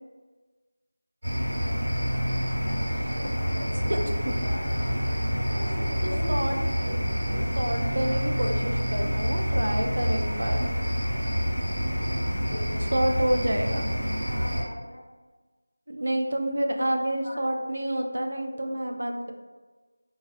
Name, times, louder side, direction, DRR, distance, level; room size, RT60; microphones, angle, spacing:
sound 1, 1.2-14.6, equal, 30° right, 1.2 m, -27 dB
voice 1, 2.7-4.8 5.2-6.9 14.2-15.0 17.2-17.9 18.5-18.8, equal, 85° left, -3 dB, 0.9 m, -41 dB
voice 2, 6.0-6.6 7.6-10.7 12.8-13.9 15.9-19.3, right 1 dB, 70° right, 3 dB, 0.3 m, -28 dB
2.3 x 2.3 x 2.6 m, 1.3 s
figure-of-eight pair, 180°, 0 cm